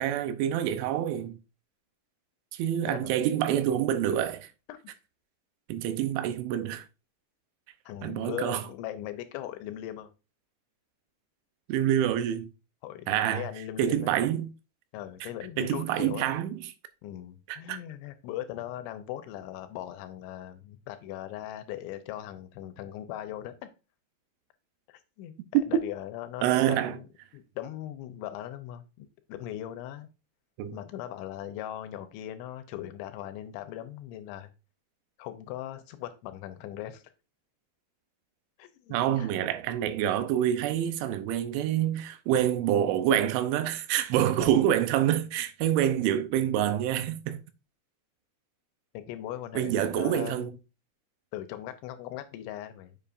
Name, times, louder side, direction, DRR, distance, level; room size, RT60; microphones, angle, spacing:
voice 1, 0.0-1.4 2.5-4.5 5.7-6.8 8.0-8.6 11.7-12.5 13.1-13.5 13.8-14.5 15.2-15.3 15.6-16.6 17.5-17.8 25.5-25.8 26.4-27.0 30.6-30.8 38.9-47.4 49.5-50.5, right 11 dB, 90° right, 3.1 m, -27 dB
voice 2, 7.9-10.1 12.8-14.1 14.9-16.3 17.0-23.7 24.9-27.1 27.3-30.1 30.7-34.5 35.2-37.0 38.6-39.3 48.9-50.6 51.3-52.9, left 12 dB, 85° left, 2.9 m, -39 dB
7.3 x 6.8 x 2.5 m
omnidirectional pair, 5.4 m